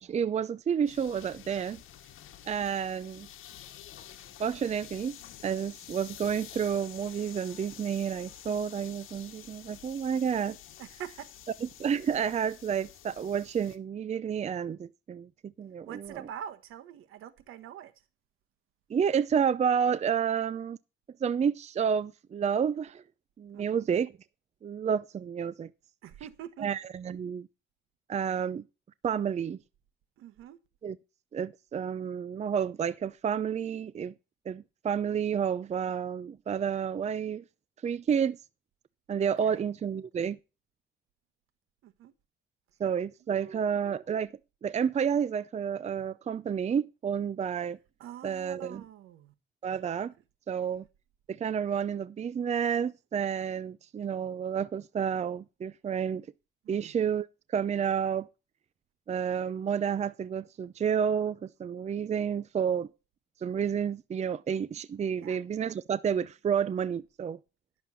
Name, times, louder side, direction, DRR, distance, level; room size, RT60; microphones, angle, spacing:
voice 1, 0.0-1.8 2.4-3.3 4.4-5.2 5.4-10.6 11.8-16.2 18.9-20.8 21.2-23.0 23.4-24.1 24.6-25.7 26.6-27.5 28.1-28.6 29.0-29.6 30.8-31.0 31.3-34.1 34.5-37.4 37.8-38.4 39.1-40.4 42.8-44.3 44.6-47.8 48.2-48.8 49.6-50.1 50.5-50.8 51.3-56.3 56.7-58.3 59.1-62.9 63.4-67.4, right 7 dB, 35° right, 0.5 m, -30 dB
sound 1, 0.9-13.8, left 11 dB, 70° left, 1.4 m, -49 dB
voice 2, 10.8-11.3 15.9-17.9 23.5-23.8 26.0-26.7 30.2-30.6 39.4-39.6 41.8-42.1 43.3-44.0 48.0-49.3 56.6-56.9 65.2-65.4, right 10 dB, 80° right, 1.4 m, -45 dB
11.0 x 7.1 x 5.7 m
cardioid pair, 105°, 21 cm